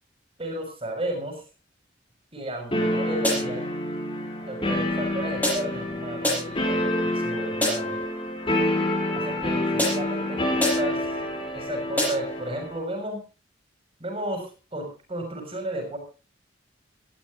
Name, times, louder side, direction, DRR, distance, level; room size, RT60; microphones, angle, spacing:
voice 1, 0.4-1.4 2.3-3.7 4.5-8.0 9.1-11.1 11.5-13.2 14.0-16.0, right 1 dB, 30° right, 4 dB, 6.3 m, -33 dB
sound 1, 2.7-12.8, left 1 dB, 30° left, 4.3 m, -27 dB
sound 2, 3.2-3.7 5.4-5.9 6.2-6.7 7.6-8.0 9.8-10.2 10.6-11.0 12.0-12.4, equal, 10° left, 7.1 m, -27 dB
18.5 x 14.5 x 3.8 m, 0.34 s
head